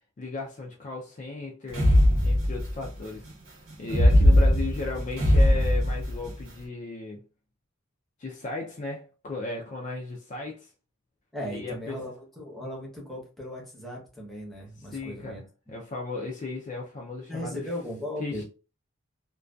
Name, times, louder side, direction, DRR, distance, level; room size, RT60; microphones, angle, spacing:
voice 1, 0.2-1.9 2.2-3.3 3.8-7.2 8.2-10.7 11.5-12.0 14.9-15.4 15.7-17.6 18.2-18.4, left 3 dB, 35° left, 0.3 m, -35 dB
sound 1, 1.7-2.8 3.8-6.3, left 1 dB, 70° right, 0.8 m, -20 dB
voice 2, 11.3-15.8 17.3-18.4, left 1 dB, ahead, 0.7 m, -37 dB
2.5 x 2.2 x 2.2 m
head